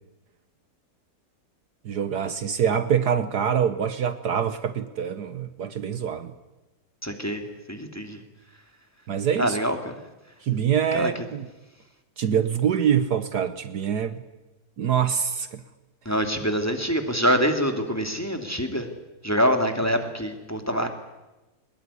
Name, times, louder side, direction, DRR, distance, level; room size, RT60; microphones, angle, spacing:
voice 1, 1.8-6.3 9.1-9.6 10.4-11.5 12.2-14.2 14.8-15.6, right 8 dB, 65° right, 1.5 m, -25 dB
voice 2, 7.0-7.4 7.7-8.2 9.4-9.9 10.9-11.1 16.0-18.9 19.2-20.9, equal, 10° left, 2.5 m, -25 dB
23.0 x 21.0 x 9.9 m
omnidirectional pair, 2.0 m